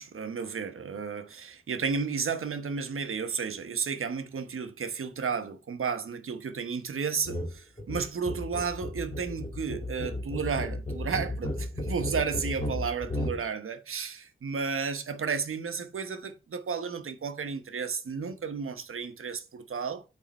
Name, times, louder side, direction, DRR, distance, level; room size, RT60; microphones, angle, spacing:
voice 1, 0.0-20.0, right 5 dB, 80° right, 1.0 m, -33 dB
sound 1, 7.2-7.5 7.8-13.4, left 1 dB, 25° left, 2.2 m, -34 dB
8.5 x 3.6 x 5.2 m
wide cardioid pair, 130°, 21 cm